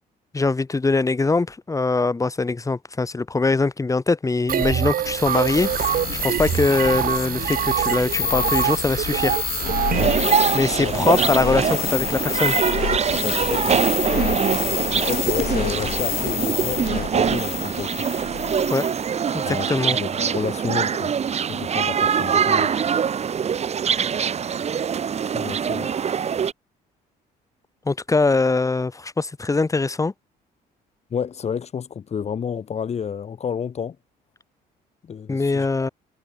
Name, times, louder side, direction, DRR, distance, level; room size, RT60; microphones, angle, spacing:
voice 1, 0.3-9.4 10.5-12.6 18.7-18.8 19.3-20.0 27.9-30.1 35.3-35.9, left 3 dB, 20° left, 7.5 m, -22 dB
sound 1, 4.5-10.4, right 10 dB, 55° right, 6.8 m, -24 dB
sound 2, 5.0-19.1, left 12 dB, 60° left, 2.0 m, -29 dB
sound 3, 9.9-26.5, right 7 dB, 40° right, 2.4 m, -23 dB
voice 2, 13.2-13.9 14.7-18.1 19.4-21.1 21.5-22.7 25.3-25.9 31.1-34.0 35.0-35.7, left 7 dB, 40° left, 3.3 m, -30 dB
cardioid pair, 110°, 17 cm